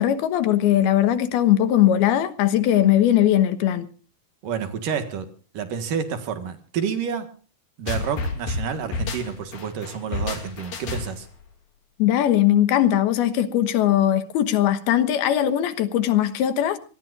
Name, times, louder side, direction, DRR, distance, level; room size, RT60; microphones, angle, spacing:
voice 1, 0.0-3.9 12.0-16.8, left 11 dB, 90° left, 3.2 m, -20 dB
voice 2, 4.4-7.3 7.8-11.3, right 7 dB, 65° right, 3.2 m, -29 dB
sound 1, 7.9-11.3, left 3 dB, 60° left, 4.7 m, -30 dB
26.0 x 18.5 x 2.6 m
omnidirectional pair, 4.4 m